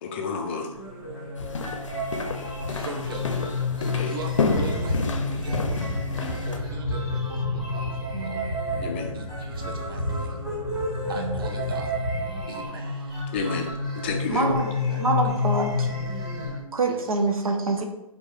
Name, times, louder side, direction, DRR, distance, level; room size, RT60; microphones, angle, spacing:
voice 1, 0.0-1.7 3.9-4.2 8.8-9.3 13.3-14.6, left 4 dB, 20° left, 2 dB, 0.4 m, -32 dB
sound 1, 0.7-16.6, left 3 dB, ahead, 1.2 m, -31 dB
sound 2, 1.4-6.6, left 4 dB, 60° left, 0.6 m, -30 dB
voice 2, 2.6-3.4 4.1-5.6 6.2-8.4 9.1-10.4 11.1-11.9 12.5-13.2 14.4-15.2 16.9-17.0, right 3 dB, 40° right, 3 dB, 0.7 m, -40 dB
sound 3, 4.3-12.4, equal, 25° right, 1.3 m, -32 dB
voice 3, 8.1-8.5 11.2-11.3 14.3-14.7 15.0-15.9 16.7-17.8, right 2 dB, 75° right, 4 dB, 0.8 m, -26 dB
4.3 x 2.8 x 3.3 m, 0.95 s
figure-of-eight pair, 145°, 18 cm